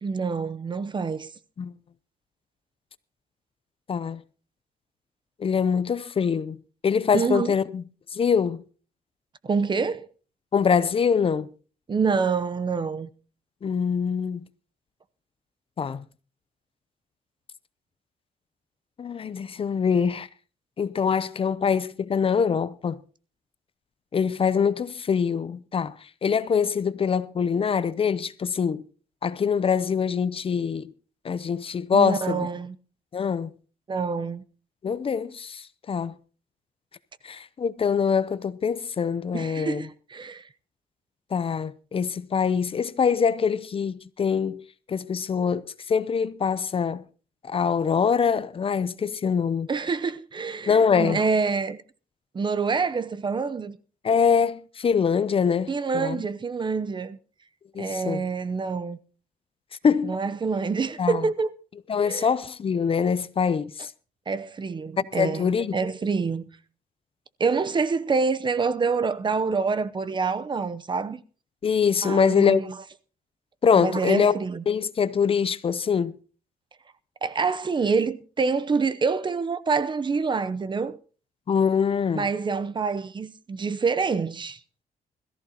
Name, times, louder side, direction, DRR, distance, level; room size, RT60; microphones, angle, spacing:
voice 1, 0.0-1.3 7.1-7.5 9.4-10.1 11.9-13.1 31.9-32.8 33.9-34.4 39.3-40.4 49.7-51.8 52.3-53.8 55.7-57.2 57.8-59.0 60.0-61.5 62.0-62.3 64.3-66.5 67.4-71.2 72.0-72.8 73.8-74.6 77.2-81.0 82.2-84.6, right 5 dB, 30° right, 0.7 m, -26 dB
voice 2, 3.9-4.2 5.4-7.8 8.1-8.6 10.5-11.5 13.6-14.5 15.8-16.0 19.0-20.3 20.8-23.0 24.1-28.8 29.2-30.9 31.2-32.5 33.1-33.5 34.8-36.2 37.2-39.9 41.3-44.6 44.9-47.0 47.4-49.7 50.7-51.2 54.0-56.2 57.7-58.2 59.8-60.1 61.0-61.3 61.9-63.9 65.1-65.8 71.6-72.6 73.6-74.3 74.7-76.1 81.5-82.3, left 6 dB, 40° left, 0.6 m, -24 dB
21.0 x 14.5 x 2.9 m
cardioid pair, 120°, 15 cm